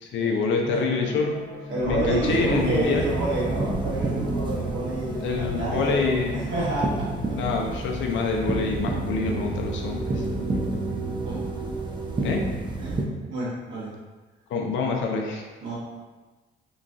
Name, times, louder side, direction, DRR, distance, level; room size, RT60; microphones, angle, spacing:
voice 1, 0.0-1.4 1.8-3.1 5.2-6.4 7.3-10.2 12.2-12.5 14.5-15.5, left 4 dB, 75° left, 1 dB, 0.5 m, -26 dB
sound 1, 0.6-12.4, right 1 dB, 10° left, 1.1 m, -38 dB
voice 2, 1.7-7.1 11.2-11.5 12.8-13.0 13.3-13.9 15.6-15.8, right 2 dB, 75° right, -7 dB, 1.1 m, -29 dB
Animal, 1.8-8.9, left 1 dB, 50° left, 0.8 m, -37 dB
sound 2, 2.3-13.0, right 2 dB, 25° right, 0.4 m, -30 dB
3.0 x 2.3 x 2.5 m, 1.3 s
cardioid pair, 90°, 20 cm